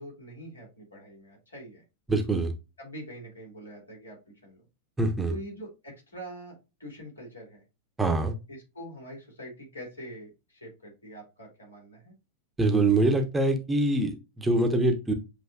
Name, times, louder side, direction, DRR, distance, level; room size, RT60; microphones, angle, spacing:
voice 1, 0.0-1.8 2.8-4.6 5.3-7.6 8.5-12.1, equal, 75° left, -1 dB, 2.3 m, -44 dB
voice 2, 2.1-2.5 5.0-5.3 8.0-8.3 12.6-15.1, right 2 dB, 10° right, 5 dB, 0.9 m, -24 dB
7.7 x 2.7 x 2.2 m, 0.27 s
figure-of-eight pair, 90°, 0 cm